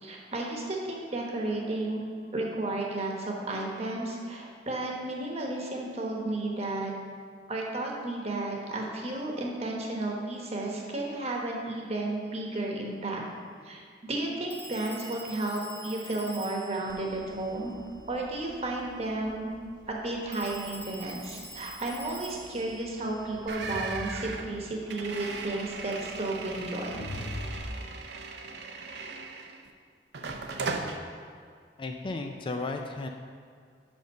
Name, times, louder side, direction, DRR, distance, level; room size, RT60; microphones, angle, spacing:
voice 1, 0.0-2.0 2.3-6.9 7.5-13.2 13.6-17.7 18.1-19.5 19.9-27.1, right 2 dB, 35° right, -1 dB, 1.1 m, -33 dB
Telephone, 12.2-12.4 14.5-18.2 20.3-24.0, equal, 10° left, 0.8 m, -47 dB
Crowd, 16.9-27.6, left 1 dB, 90° left, 1.0 m, -46 dB
sound 1, 23.5-29.7 30.1-31.0, right 4 dB, 70° right, 0.6 m, -38 dB
voice 2, 31.8-33.1, left 3 dB, 30° left, 4 dB, 0.3 m, -34 dB
5.3 x 5.2 x 6.6 m, 2.1 s
head